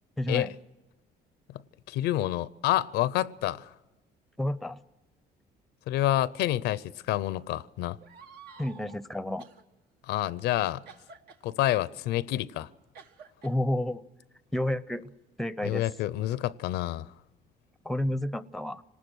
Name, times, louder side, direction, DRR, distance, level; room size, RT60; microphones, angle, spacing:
voice 1, 0.2-0.5 4.4-4.8 8.6-9.5 13.4-14.0 14.5-15.0 15.4-15.8 17.8-18.8, left 1 dB, ahead, 0.6 m, -30 dB
voice 2, 1.9-3.7 5.9-8.0 10.1-10.8 11.4-12.7 15.6-17.1, left 14 dB, 85° left, 0.6 m, -28 dB
sound 1, 8.0-9.0 9.4-9.6 10.9-11.4 12.9-13.6 14.5-14.7 15.6-16.9, right 6 dB, 75° right, 1.5 m, -52 dB
26.5 x 19.0 x 6.3 m
cardioid pair, 110°, 17 cm